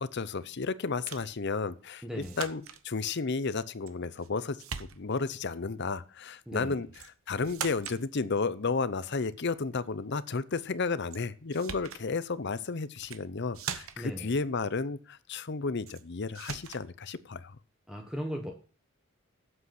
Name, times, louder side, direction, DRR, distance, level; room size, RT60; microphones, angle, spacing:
voice 1, 0.0-6.9 7.3-17.6, left 4 dB, 50° left, 0.7 m, -32 dB
sound 1, 1.1-1.3 2.2-2.8 3.9-4.3 4.6-5.3 6.9-7.1 7.4-8.0 11.1-11.2 11.5-12.0 13.0-13.2 13.5-14.2 15.9-16.0 16.4-16.9, right 7 dB, 70° right, 1.0 m, -40 dB
voice 2, 2.0-2.4 6.5-6.8 14.0-14.3 17.9-18.5, equal, 5° right, 1.1 m, -37 dB
8.3 x 7.7 x 5.9 m
head